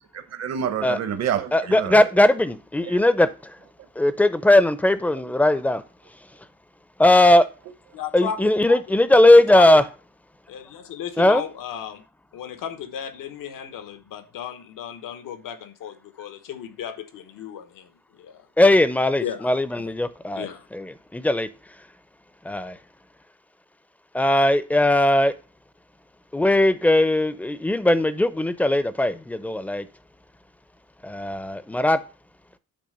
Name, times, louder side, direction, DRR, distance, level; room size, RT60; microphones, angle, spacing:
voice 1, 0.3-2.1 2.9-3.0 5.2-5.3, right 8 dB, 55° right, 0.9 m, -28 dB
voice 2, 1.5-3.6 4.0-5.8 7.0-7.5 8.1-9.8 11.2-11.4 18.6-21.5 22.4-22.8 24.1-25.3 26.3-29.9 31.0-32.0, left 1 dB, 5° left, 0.5 m, -18 dB
voice 3, 7.9-8.8 9.3-9.8 10.5-12.0 12.3-18.5 19.2-19.5 19.8-19.9 20.3-20.7, left 9 dB, 85° left, 1.2 m, -35 dB
8.7 x 3.3 x 6.5 m
cardioid pair, 135°, 32 cm